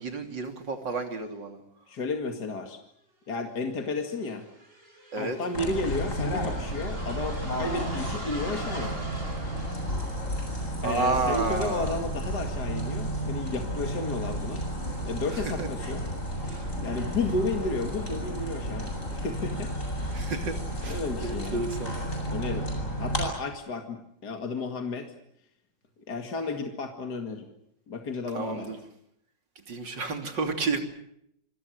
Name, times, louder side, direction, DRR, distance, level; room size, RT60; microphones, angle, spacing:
voice 1, 0.0-1.6 5.1-5.4 10.8-12.0 15.3-15.7 16.5-16.7 20.1-20.6 20.8-22.0 28.4-28.8 29.7-30.8, right 3 dB, 70° right, 5 dB, 3.7 m, -31 dB
voice 2, 1.9-2.8 3.3-4.5 5.2-9.0 10.8-14.6 15.0-16.0 16.8-19.7 20.2-20.3 20.9-21.6 22.3-22.7 23.0-25.1 26.1-27.5 27.9-28.7, left 3 dB, 60° left, 4 dB, 2.7 m, -32 dB
sound 1, 3.6-10.6, right 2 dB, 30° right, 5.5 m, -43 dB
sound 2, 5.5-23.2, equal, 40° left, 8.5 m, -32 dB
27.5 x 25.5 x 6.4 m, 0.75 s
omnidirectional pair, 2.0 m